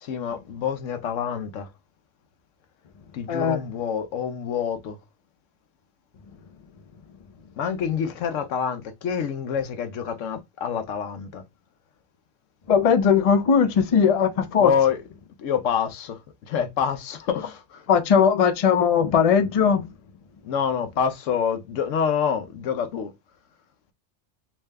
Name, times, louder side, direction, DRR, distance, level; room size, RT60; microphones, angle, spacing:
voice 1, 0.0-1.7 3.1-5.0 7.6-11.4 14.6-15.0 15.4-16.2 16.5-17.9 20.4-23.1, left 7 dB, 75° left, 1.0 m, -27 dB
voice 2, 3.3-3.6 12.7-14.7 17.9-19.9, left 7 dB, 50° left, 0.4 m, -19 dB
3.5 x 2.7 x 3.2 m
omnidirectional pair, 1.3 m